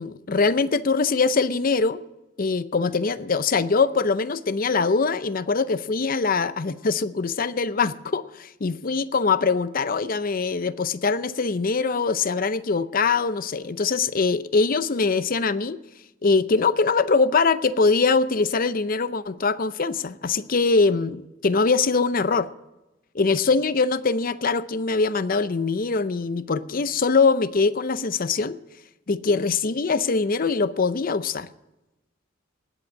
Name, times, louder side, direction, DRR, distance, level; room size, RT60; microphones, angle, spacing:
voice 1, 0.0-2.0 2.4-15.8 16.2-22.5 23.1-28.6 29.1-31.5, left 4 dB, 45° left, 14 dB, 0.6 m, -23 dB
19.5 x 8.0 x 6.4 m, 0.99 s
head